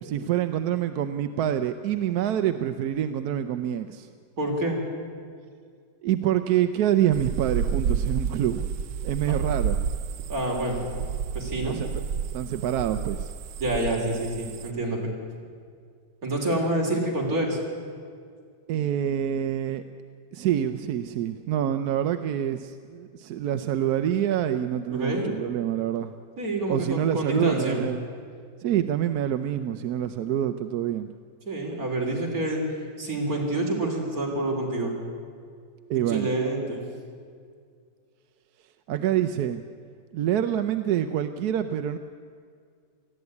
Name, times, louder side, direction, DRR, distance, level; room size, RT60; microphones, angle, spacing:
voice 1, 0.0-4.1 6.0-8.7 9.0-9.8 11.6-11.9 12.3-13.3 18.7-19.8 20.3-26.1 26.7-28.1 28.6-31.1 35.9-36.3 38.9-39.6 40.1-42.0, right 10 dB, 70° right, 10 dB, 1.0 m, -26 dB
voice 2, 4.4-4.8 9.3-9.4 10.3-10.8 11.3-11.8 13.6-15.1 16.2-17.6 24.9-25.3 26.4-27.8 31.5-34.9 36.1-36.8, right 1 dB, 50° right, -1 dB, 3.8 m, -27 dB
sound 1, 7.1-14.7, right 7 dB, 90° right, 1.5 m, -30 dB
19.0 x 14.5 x 9.6 m, 2.1 s
omnidirectional pair, 2.0 m